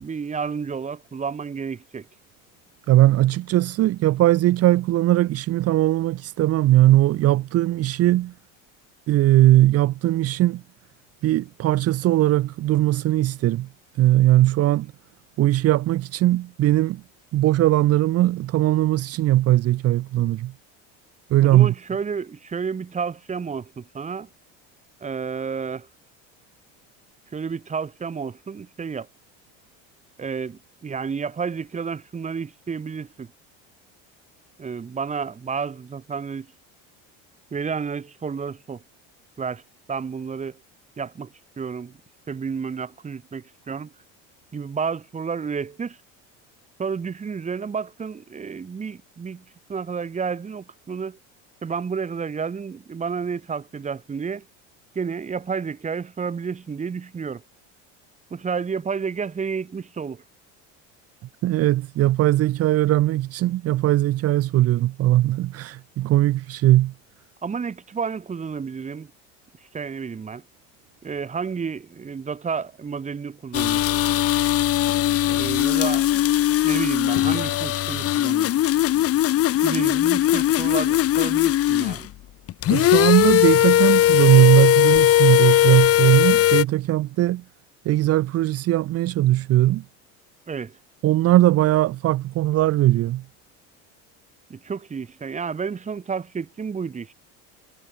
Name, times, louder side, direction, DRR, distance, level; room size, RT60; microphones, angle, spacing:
voice 1, 0.0-2.1 21.4-24.3 25.0-25.9 27.3-29.1 30.2-33.3 34.6-36.5 37.5-38.8 39.4-39.6 39.9-40.6 41.0-41.3 41.6-41.9 42.3-43.9 44.5-46.0 46.8-51.2 51.6-54.4 54.9-57.4 58.3-60.2 67.4-69.1 69.7-70.4 71.0-73.8 75.3-76.1 76.6-78.5 79.6-82.1 90.5-90.8 94.5-97.1, right 6 dB, 20° right, 6.9 m, -30 dB
voice 2, 2.9-8.3 9.1-10.6 11.2-13.7 14.0-14.9 15.4-17.0 17.3-20.5 21.3-21.7 61.4-66.9 82.7-87.4 87.8-89.8 91.0-93.2, right 15 dB, 45° right, 1.7 m, -19 dB
sound 1, 73.5-82.1 82.5-86.6, left 13 dB, 45° left, 2.7 m, -19 dB
cardioid pair, 145°, 34 cm